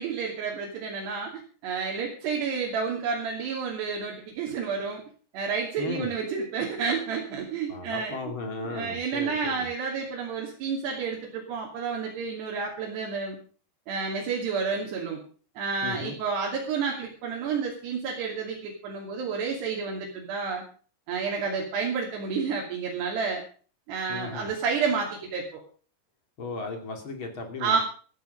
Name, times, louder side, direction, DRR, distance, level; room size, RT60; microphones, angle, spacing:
voice 1, 0.0-5.0 5.3-8.2 8.6-13.4 13.9-15.2 15.6-20.6 21.1-23.4 23.9-25.6 27.6-27.8, right 5 dB, 75° right, -2 dB, 4.9 m, -30 dB
voice 2, 5.8-6.1 7.7-9.7 15.8-16.2 24.1-24.5 26.4-27.8, left 3 dB, 35° left, 5 dB, 2.8 m, -36 dB
14.0 x 14.0 x 5.2 m, 0.41 s
omnidirectional pair, 4.9 m